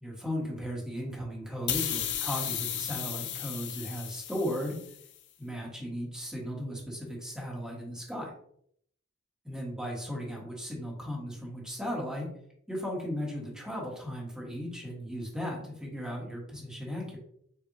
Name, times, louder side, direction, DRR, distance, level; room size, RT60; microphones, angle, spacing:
voice 1, 0.0-4.8 5.4-8.3 9.4-12.3 12.7-17.2, equal, 5° right, -2 dB, 1.4 m, -36 dB
sound 1, 1.7-5.1, left 10 dB, 55° left, 0.6 m, -34 dB
7.5 x 2.6 x 2.7 m, 0.67 s
head